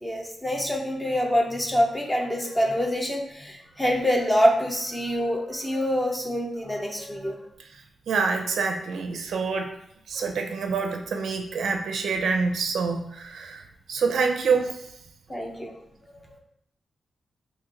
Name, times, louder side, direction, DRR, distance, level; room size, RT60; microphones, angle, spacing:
voice 1, 0.0-7.4 15.3-15.7, equal, 10° left, 1 dB, 0.5 m, -25 dB
voice 2, 8.1-9.7 10.1-13.6 13.9-14.8, right 5 dB, 85° right, 4 dB, 0.4 m, -26 dB
3.0 x 2.6 x 3.6 m, 0.75 s
wide cardioid pair, 170°, 0 cm